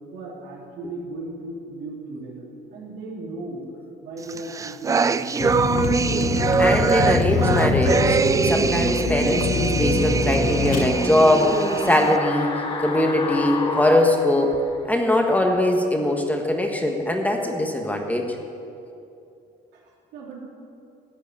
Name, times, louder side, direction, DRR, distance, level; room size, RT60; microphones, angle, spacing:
voice 1, 0.1-3.6 4.0-5.4 19.7-20.4, right 2 dB, 85° right, -5 dB, 3.7 m, -36 dB
sound 1, 4.3-12.2, right 5 dB, 20° right, 0.3 m, -23 dB
Vehicle, 5.4-10.9, left 5 dB, 55° left, 1.1 m, -25 dB
voice 2, 6.6-14.6 14.9-18.4, left 1 dB, 10° left, 2 dB, 1.3 m, -21 dB
sound 2, 9.8-15.0 15.3-15.4, left 3 dB, 30° left, 1.7 m, -31 dB
14.0 x 6.2 x 9.5 m, 2.7 s
cardioid pair, 110°, 17 cm